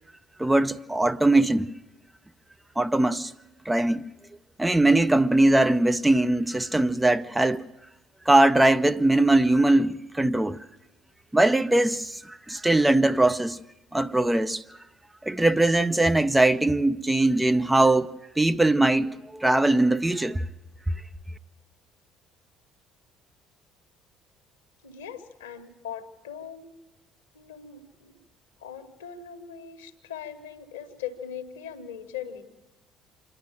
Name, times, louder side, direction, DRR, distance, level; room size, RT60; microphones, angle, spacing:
voice 1, 0.4-1.7 2.8-3.3 3.7-4.0 4.6-7.6 8.3-10.6 11.3-13.6 13.9-14.8 15.2-20.4, right 2 dB, 10° right, 0.6 m, -21 dB
voice 2, 24.8-26.7 27.3-28.2 28.6-32.5, left 8 dB, 75° left, 1.4 m, -40 dB
26.0 x 11.0 x 8.9 m
figure-of-eight pair, 55°, 0 cm